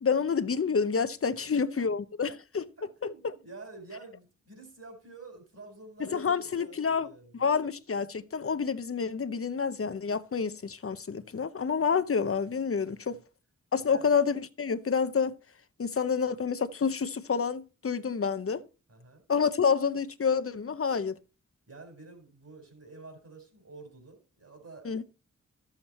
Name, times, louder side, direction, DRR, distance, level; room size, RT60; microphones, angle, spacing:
voice 1, 0.0-2.7 3.0-3.3 6.0-13.2 13.7-15.3 15.8-18.6 19.3-21.2 24.8-25.0, left 6 dB, 45° left, 0.8 m, -28 dB
voice 2, 1.3-1.9 2.8-7.5 13.1-13.2 13.9-14.1 18.9-19.2 21.7-25.0, right 3 dB, 50° right, 4.3 m, -49 dB
13.0 x 7.3 x 4.2 m
wide cardioid pair, 110°, 30 cm